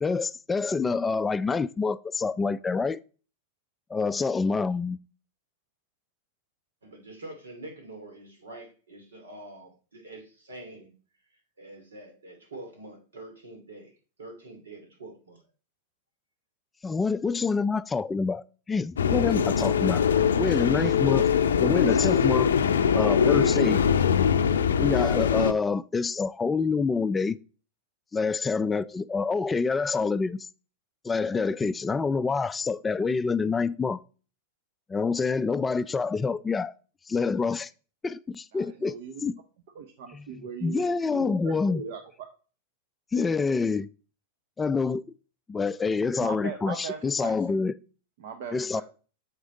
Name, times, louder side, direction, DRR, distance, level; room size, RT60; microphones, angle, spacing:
voice 1, 0.0-3.0 3.9-5.0 16.8-20.0 20.4-21.3 21.6-22.5 22.9-23.8 24.8-27.4 28.1-30.5 31.0-34.0 34.9-36.7 37.1-37.7 38.0-39.0 39.2-39.4 40.1-40.2 40.6-41.8 43.1-43.9 44.6-45.0 45.5-47.7 48.5-48.8, left 4 dB, 15° left, 0.3 m, -27 dB
voice 2, 6.8-10.9 11.6-15.4, right 2 dB, 85° right, 2.6 m, -45 dB
sound 1, 19.0-25.5, left 7 dB, 85° left, 0.5 m, -22 dB
voice 3, 38.5-39.2 39.7-42.0 46.2-47.7 48.2-48.8, right 6 dB, 65° right, 0.9 m, -39 dB
7.2 x 4.9 x 3.8 m
hypercardioid pair, 110°, 0 cm